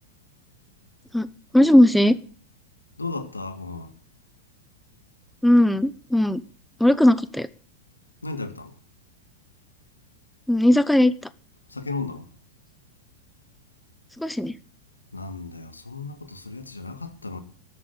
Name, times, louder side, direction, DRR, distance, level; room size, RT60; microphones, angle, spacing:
voice 1, 1.5-2.2 5.4-6.4 6.8-7.5 10.5-11.1 14.2-14.5, left 1 dB, 5° left, 0.9 m, -18 dB
voice 2, 3.0-3.9 8.2-8.7 11.7-12.2 15.1-17.4, left 3 dB, 80° left, 1.9 m, -34 dB
13.5 x 8.6 x 9.9 m
figure-of-eight pair, 90°, 0 cm